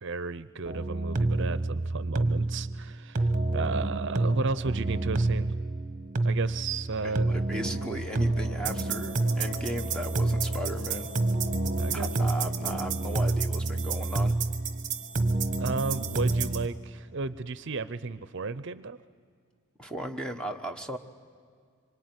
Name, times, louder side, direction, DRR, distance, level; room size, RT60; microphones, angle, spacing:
voice 1, 0.0-3.3 3.5-5.5 6.2-7.3 11.8-12.1 15.6-19.0, right 4 dB, 55° right, 15 dB, 0.6 m, -33 dB
sound 1, 0.7-16.7, right 2 dB, 35° right, 1.2 m, -28 dB
voice 2, 7.0-11.1 11.9-14.3 19.8-21.0, right 1 dB, 5° left, 5 dB, 1.2 m, -36 dB
sound 2, 7.6-16.2, left 3 dB, 55° left, 7.6 m, -46 dB
25.5 x 24.0 x 9.6 m, 2.1 s
head